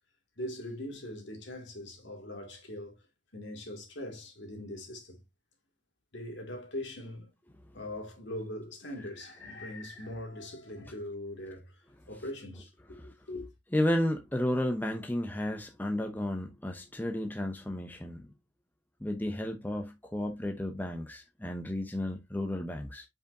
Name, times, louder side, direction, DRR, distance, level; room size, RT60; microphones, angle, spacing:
voice 1, 0.4-3.0 3.3-5.2 6.1-7.3 7.7-13.5, left 1 dB, 60° left, 2.3 m, -41 dB
voice 2, 13.7-18.2 19.0-23.0, left 1 dB, 10° left, 0.7 m, -32 dB
7.4 x 5.2 x 2.6 m
head